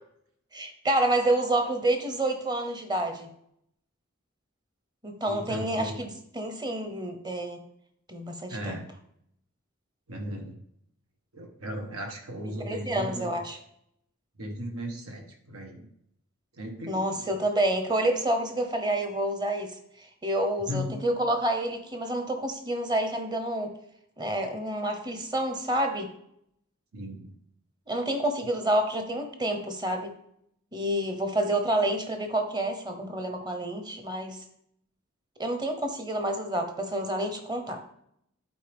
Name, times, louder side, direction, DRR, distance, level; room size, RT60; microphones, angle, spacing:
voice 1, 0.5-3.3 5.0-7.6 8.1-8.8 12.6-13.6 16.9-19.7 20.0-23.7 24.2-26.1 27.9-30.1 30.7-34.4 35.4-37.8, right 1 dB, 20° right, 6 dB, 0.9 m, -28 dB
voice 2, 5.3-5.9 8.5-8.9 10.1-10.6 11.3-13.3 14.4-15.8 16.5-17.3 20.7-21.0 26.9-27.3, equal, 85° right, 2 dB, 1.4 m, -36 dB
11.0 x 4.5 x 3.5 m, 0.73 s
head